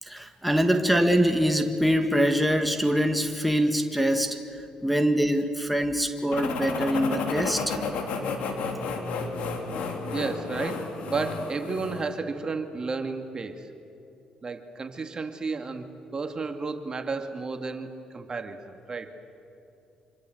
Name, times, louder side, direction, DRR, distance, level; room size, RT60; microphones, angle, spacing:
voice 1, 0.0-7.8, equal, ahead, 5 dB, 1.9 m, -24 dB
sound 1, 6.3-12.1, left 4 dB, 80° left, 3.4 m, -32 dB
voice 2, 10.1-13.7 14.4-19.1, right 4 dB, 35° right, 6 dB, 2.2 m, -32 dB
26.5 x 25.5 x 7.9 m, 2.8 s
supercardioid pair, 70°, 2 cm